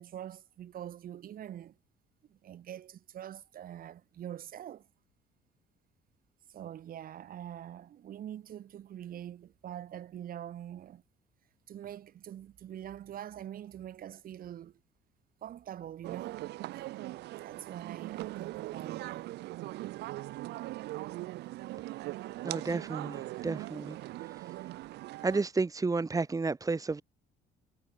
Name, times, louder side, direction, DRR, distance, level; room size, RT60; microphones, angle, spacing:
voice 1, 0.0-1.7 2.3-4.9 6.5-11.0 11.7-14.8 15.4-16.5 17.4-19.3, right 11 dB, 60° right, 7.2 m, -44 dB
sound 1, 16.0-25.4, right 17 dB, 85° right, 6.0 m, -40 dB
voice 2, 22.4-24.0 25.2-27.0, right 3 dB, 20° right, 3.3 m, -31 dB
cardioid pair, 110°, 17 cm